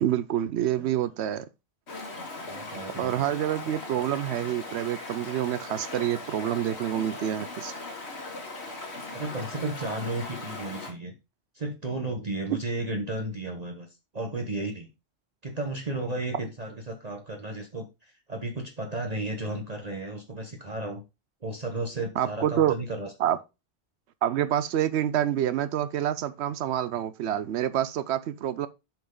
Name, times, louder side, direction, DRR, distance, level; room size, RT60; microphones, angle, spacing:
voice 1, 0.0-1.5 3.0-7.7 22.2-22.7 23.2-23.4 24.2-28.7, right 11 dB, 85° right, 0.9 m, -27 dB
Stream, 1.9-10.9, left 2 dB, 80° left, 2.0 m, -39 dB
voice 2, 2.4-3.2 9.1-11.1 11.5-13.9 14.1-14.9 15.4-21.0 21.4-23.1, right 2 dB, 40° right, 1.1 m, -33 dB
7.3 x 5.6 x 3.8 m
omnidirectional pair, 1.1 m